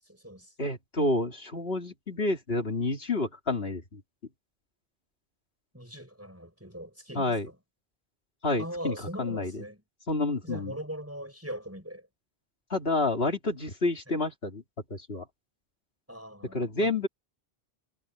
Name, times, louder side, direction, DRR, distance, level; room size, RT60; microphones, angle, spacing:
voice 1, 0.0-0.5 5.7-7.6 8.6-9.8 10.4-12.1 14.1-14.2 16.1-16.9, equal, 15° right, 6.1 m, -41 dB
voice 2, 0.6-4.0 7.1-7.5 8.4-9.5 10.1-10.7 12.7-14.6 14.9-15.2 16.5-17.1, left 2 dB, 70° left, 3.2 m, -29 dB
omnidirectional pair, 1.1 m